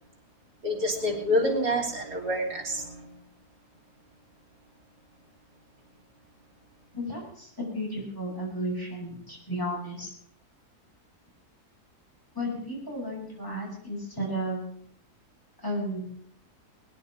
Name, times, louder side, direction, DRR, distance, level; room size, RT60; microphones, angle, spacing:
voice 1, 0.6-3.1, left 1 dB, 90° right, -2 dB, 3.8 m, -27 dB
voice 2, 6.9-10.1 12.3-14.6 15.6-16.1, equal, 10° left, -3 dB, 5.6 m, -33 dB
21.0 x 10.0 x 5.2 m, 0.65 s
omnidirectional pair, 1.7 m